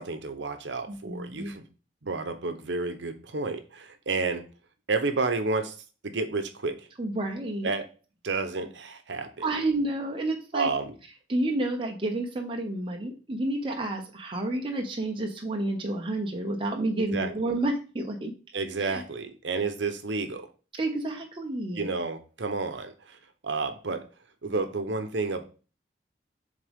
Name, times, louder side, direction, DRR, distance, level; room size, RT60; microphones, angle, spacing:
voice 1, 0.0-1.7 2.0-4.5 4.9-5.8 6.0-6.9 7.6-7.9 8.2-9.5 10.5-10.9 17.1-17.3 18.5-20.5 21.7-23.2 23.4-24.1 24.4-25.4, right 3 dB, 80° right, 0.8 m, -30 dB
voice 2, 0.9-1.5 7.0-7.7 9.4-10.7 11.3-18.3 18.8-19.0 20.7-21.9, right 2 dB, 30° right, 0.8 m, -30 dB
7.4 x 3.6 x 3.5 m
head